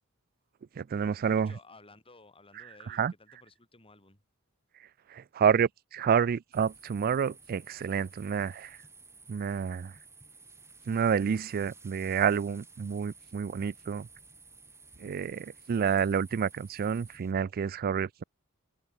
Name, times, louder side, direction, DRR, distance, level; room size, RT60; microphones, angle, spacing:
voice 1, 0.8-1.5 2.9-3.1 5.1-8.8 9.3-9.9 10.9-14.1 15.0-18.2, right 7 dB, 40° right, 0.3 m, -29 dB
voice 2, 1.4-4.2, left 3 dB, 25° left, 6.4 m, -56 dB
sound 1, 6.5-17.3, right 3 dB, 10° right, 6.5 m, -54 dB
head